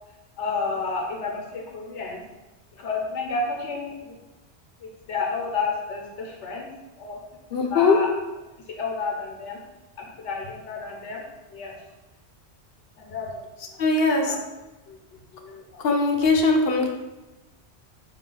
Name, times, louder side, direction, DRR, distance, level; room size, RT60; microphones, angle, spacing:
voice 1, 0.4-2.2 2.8-4.2 4.8-6.7 7.0-7.2 7.7-8.1 8.7-9.6 10.0-11.2 11.5-11.8 13.0-13.8 14.2-14.4 14.9-15.8, left 4 dB, 90° left, 0 dB, 1.2 m, -31 dB
voice 2, 7.5-8.0 13.8-14.3 15.8-16.9, left 3 dB, 65° left, 3 dB, 0.8 m, -20 dB
4.7 x 2.8 x 3.8 m, 1.1 s
omnidirectional pair, 1.2 m